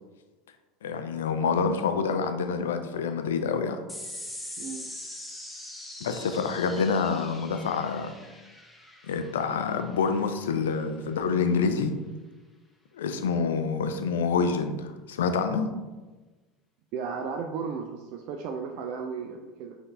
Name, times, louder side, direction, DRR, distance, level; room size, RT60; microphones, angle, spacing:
voice 1, 0.8-3.8 6.0-8.1 9.0-11.9 13.0-15.7, left 5 dB, 70° left, 7 dB, 0.4 m, -27 dB
sound 1, 3.9-10.7, left 1 dB, 5° left, 0.8 m, -43 dB
voice 2, 4.6-4.9 16.9-19.8, right 5 dB, 55° right, 3 dB, 0.3 m, -34 dB
5.6 x 2.6 x 3.3 m, 1.2 s
figure-of-eight pair, 75°, 0 cm